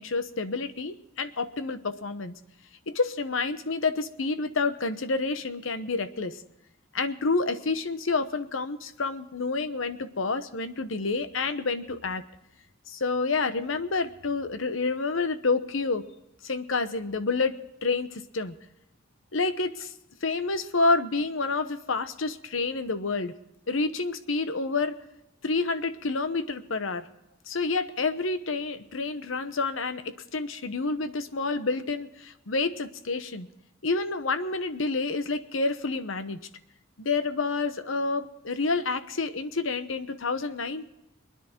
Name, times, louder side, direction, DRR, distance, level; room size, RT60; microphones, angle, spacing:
voice 1, 0.0-2.3 2.9-6.4 6.9-12.2 12.9-16.0 16.4-17.5 17.8-18.5 19.3-19.9 20.2-23.3 23.7-25.0 25.4-27.1 27.5-33.5 33.8-36.4 37.0-40.9, left 3 dB, 70° left, 12 dB, 1.0 m, -29 dB
23.5 x 10.5 x 4.4 m, 0.89 s
head